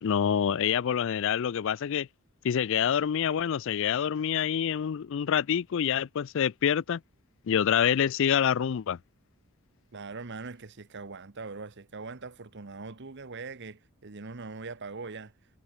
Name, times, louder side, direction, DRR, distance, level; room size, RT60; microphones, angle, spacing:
voice 1, 0.0-2.1 2.4-7.0 7.5-9.0, left 8 dB, 60° left, 0.4 m, -26 dB
voice 2, 9.9-15.3, right 4 dB, 50° right, 1.1 m, -41 dB
head